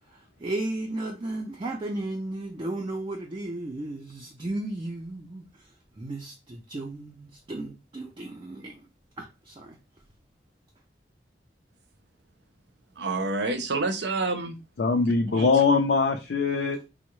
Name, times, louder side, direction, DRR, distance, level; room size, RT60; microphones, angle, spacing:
voice 1, 0.4-5.4 6.0-8.8 9.2-9.8, right 2 dB, 25° right, 0.4 m, -34 dB
voice 2, 13.0-14.6 15.0-15.5, right 3 dB, 75° right, 0.6 m, -29 dB
voice 3, 14.8-16.8, left 4 dB, 70° left, 0.4 m, -22 dB
3.5 x 2.0 x 3.0 m
head